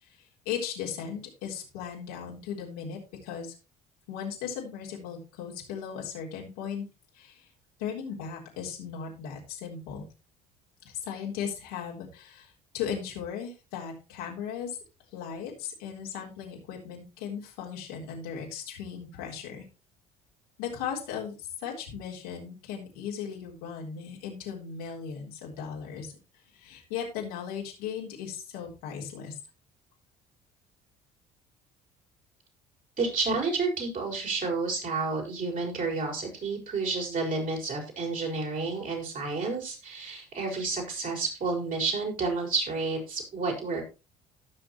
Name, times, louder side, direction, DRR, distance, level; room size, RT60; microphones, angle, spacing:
voice 1, 0.0-3.5 4.1-6.9 7.1-7.5 7.8-10.1 10.8-14.8 15.1-19.7 20.6-26.1 26.5-29.3, left 7 dB, 80° left, -2 dB, 3.8 m, -37 dB
voice 2, 33.0-43.8, right 4 dB, 50° right, 0 dB, 6.2 m, -30 dB
17.5 x 6.4 x 3.1 m, 0.29 s
hypercardioid pair, 65°, 18 cm